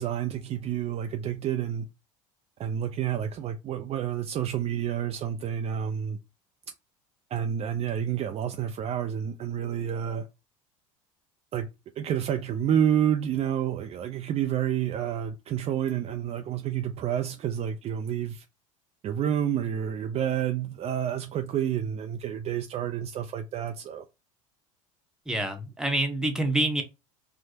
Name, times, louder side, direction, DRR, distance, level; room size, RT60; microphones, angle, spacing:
voice 1, 0.0-1.9 2.6-6.2 7.3-10.3 11.5-11.7 12.0-18.5 19.0-24.1, right 9 dB, 35° right, 0.4 m, -29 dB
voice 2, 25.3-26.8, right 1 dB, 5° right, 0.9 m, -26 dB
4.5 x 2.1 x 2.7 m
hypercardioid pair, 75°, 18 cm